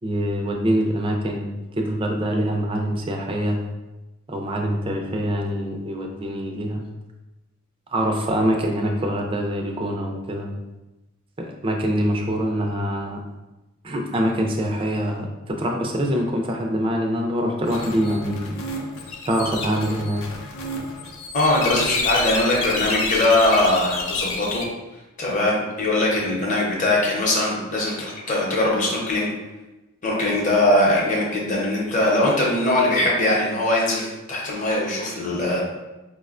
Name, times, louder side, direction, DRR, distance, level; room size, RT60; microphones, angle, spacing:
voice 1, 0.0-1.4 1.7-3.6 4.3-6.8 7.9-10.5 11.4-13.2 13.8-18.6 19.3-20.2, equal, 25° right, 1 dB, 0.4 m, -24 dB
sound 1, 17.7-24.6, left 3 dB, 70° left, 0.5 m, -29 dB
voice 2, 21.3-24.6 25.2-29.3 30.0-35.6, left 1 dB, 35° left, -3 dB, 0.7 m, -21 dB
4.7 x 2.1 x 2.4 m, 1.0 s
head